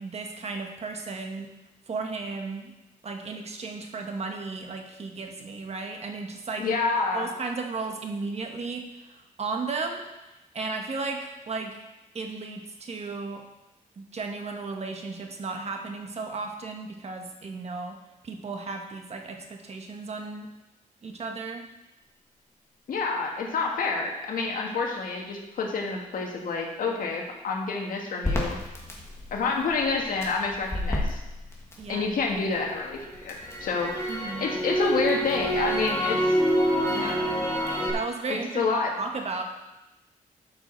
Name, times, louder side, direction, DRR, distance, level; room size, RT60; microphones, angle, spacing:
voice 1, 0.0-1.5 1.9-2.7 3.0-6.6 7.1-8.8 9.1-10.1 10.5-11.7 12.1-13.4 14.0-18.0 18.2-20.5 21.0-21.6 31.8-32.1 34.1-34.5 36.9-37.5 37.9-38.6 39.0-39.4, right 4 dB, 50° right, 3 dB, 1.4 m, -34 dB
voice 2, 6.6-7.3 22.9-28.6 29.3-31.2 31.9-33.9 34.4-36.4 36.9-37.1 38.3-38.9, left 4 dB, 80° left, 0 dB, 1.6 m, -28 dB
Crackle, 28.2-32.4 32.8-37.9, equal, 20° left, 1.9 m, -27 dB
12.0 x 5.9 x 4.5 m, 1.0 s
cardioid pair, 110°, 14 cm